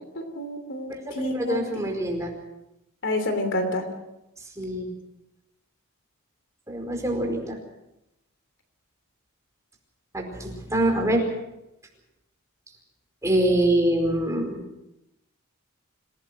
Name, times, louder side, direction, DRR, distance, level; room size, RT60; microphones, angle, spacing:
voice 1, 0.1-1.9 3.0-3.9, left 1 dB, 60° left, 7 dB, 3.2 m, -29 dB
voice 2, 0.9-2.3 4.6-4.9 6.7-7.6 10.1-11.2 13.2-14.6, right 1 dB, 15° right, 1 dB, 4.8 m, -25 dB
26.5 x 17.5 x 6.2 m, 0.89 s
head